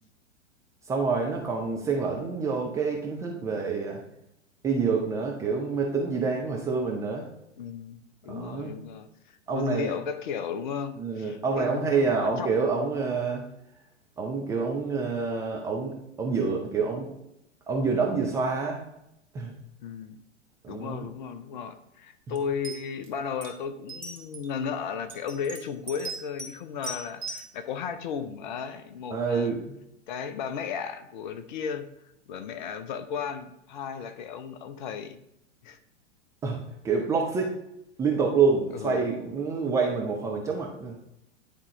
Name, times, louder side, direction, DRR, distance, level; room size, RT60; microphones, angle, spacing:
voice 1, 0.9-4.0 4.6-7.3 8.3-8.7 9.5-9.9 11.0-13.4 14.2-17.1 17.7-18.8 19.3-19.5 20.6-21.1 22.3-22.4 29.1-29.6 36.4-36.6 36.8-37.5 38.0-41.0, right 4 dB, 10° right, -1 dB, 0.4 m, -27 dB
voice 2, 7.6-11.9 12.2-12.5 19.8-20.2 20.7-29.5 30.1-31.8 32.3-35.2 35.6-35.8 38.7-39.0, left 7 dB, 40° left, 10 dB, 0.7 m, -35 dB
sound 1, 22.4-22.5 22.6-23.1 23.4-23.5 23.9-24.5 25.1-26.5 26.8-27.5, right 2 dB, 80° right, 1.8 m, -38 dB
9.8 x 3.7 x 4.0 m, 0.82 s
figure-of-eight pair, 105°, 37 cm